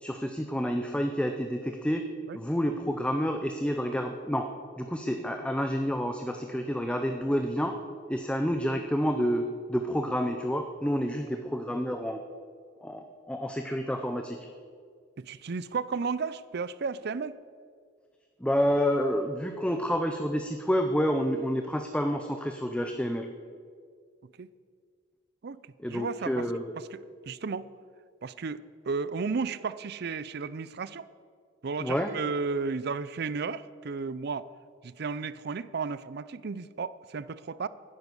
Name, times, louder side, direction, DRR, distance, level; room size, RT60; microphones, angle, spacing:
voice 1, 0.0-2.1 2.3-4.5 4.8-7.8 8.1-12.2 12.8-14.5 18.4-23.3 25.8-26.7 31.8-32.1, equal, 5° left, 5 dB, 0.6 m, -29 dB
voice 2, 15.2-17.4 24.4-24.5 25.4-25.6 25.9-26.5 26.9-27.0 27.3-27.7 28.2-31.1 31.6-34.5 34.8-37.7, right 4 dB, 60° right, 17 dB, 0.5 m, -33 dB
11.0 x 10.5 x 8.3 m, 2.1 s
head